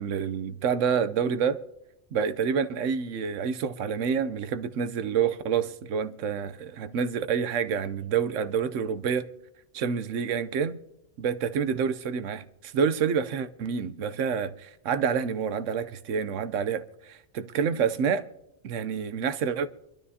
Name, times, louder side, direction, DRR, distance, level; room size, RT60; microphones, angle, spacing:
voice 1, 0.0-1.6 2.1-9.3 9.7-10.8 11.2-18.2 18.6-19.7, right 7 dB, 80° right, 1.0 m, -28 dB
25.5 x 12.5 x 2.8 m
omnidirectional pair, 1.3 m